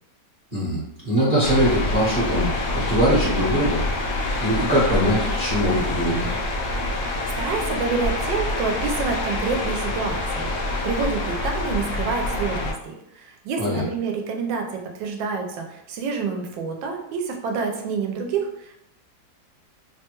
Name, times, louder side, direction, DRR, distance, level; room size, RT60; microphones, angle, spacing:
voice 1, 0.5-3.8 4.4-6.3 13.6-13.8, equal, 30° right, -9 dB, 0.8 m, -22 dB
sound 1, 1.4-12.7, left 2 dB, 75° left, 0.7 m, -26 dB
voice 2, 7.0-14.7 15.0-18.8, right 5 dB, 80° right, 2 dB, 1.3 m, -28 dB
3.2 x 2.2 x 2.8 m, 0.78 s
omnidirectional pair, 2.0 m